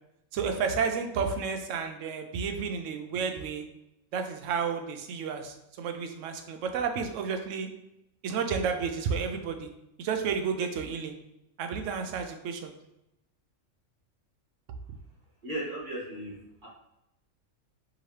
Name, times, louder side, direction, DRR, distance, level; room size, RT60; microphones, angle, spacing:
voice 1, 0.3-3.6 4.1-7.7 8.2-9.7 10.0-11.2 11.6-12.7, right 6 dB, 75° right, 6 dB, 0.9 m, -31 dB
voice 2, 15.4-16.4 16.6-16.7, right 1 dB, 40° right, -7 dB, 1.8 m, -35 dB
4.8 x 2.9 x 3.1 m, 0.87 s
omnidirectional pair, 1.4 m